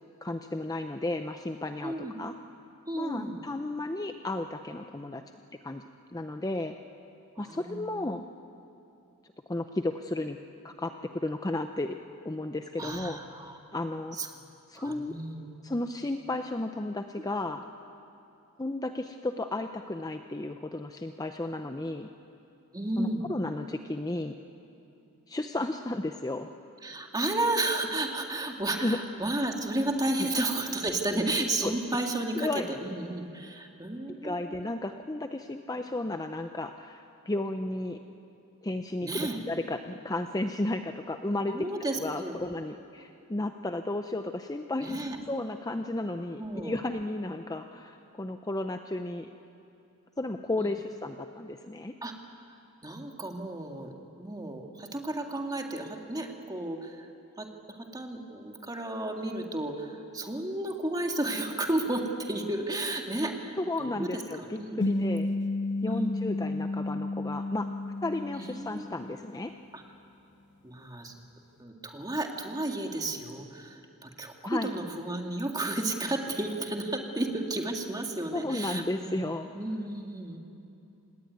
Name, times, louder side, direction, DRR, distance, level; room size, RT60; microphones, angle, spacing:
voice 1, 0.2-2.3 2.9-5.2 5.6-5.8 6.1-6.7 7.4-8.2 9.5-10.4 10.6-12.0 12.2-13.4 13.7-14.2 14.7-15.1 15.6-17.6 18.6-22.1 23.0-24.3 25.3-26.5 28.8-29.0 30.2-30.3 31.6-31.7 32.3-32.6 34.2-38.0 38.6-39.1 39.5-41.6 42.0-45.0 45.3-49.3 50.2-51.9 63.6-65.3 65.8-67.7 68.0-69.5 74.4-74.7 78.3-79.5, left 2 dB, 15° left, 6 dB, 0.6 m, -33 dB
voice 2, 1.8-2.1 2.9-3.3 7.4-8.1 12.8-13.6 14.2-14.3 14.8-15.5 22.7-23.2 26.8-32.5 32.8-34.5 39.0-39.4 41.5-42.3 44.8-45.2 46.4-46.8 50.6-50.7 52.0-52.1 52.8-57.0 57.4-65.2 65.9-66.1 68.4-68.9 69.7-69.8 70.6-71.1 71.6-79.2 79.5-80.4, right 1 dB, 15° right, 2 dB, 2.1 m, -33 dB
sound 1, 64.8-69.5, left 2 dB, 50° left, 0.8 m, -32 dB
27.0 x 19.0 x 9.5 m, 2.7 s
head